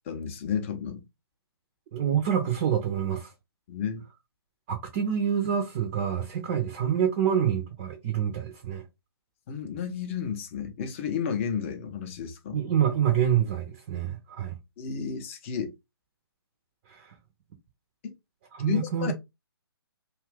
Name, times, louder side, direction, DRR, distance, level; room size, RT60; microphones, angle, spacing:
voice 1, 0.1-1.0 3.7-4.0 9.5-12.6 14.8-15.7 18.0-18.1 18.7-19.1, left 7 dB, 30° left, 0.6 m, -32 dB
voice 2, 1.9-3.3 4.7-8.8 12.5-14.6 16.9-17.1 18.5-19.1, right 9 dB, 25° right, 0.5 m, -27 dB
2.6 x 2.4 x 3.3 m
figure-of-eight pair, 135°, 13 cm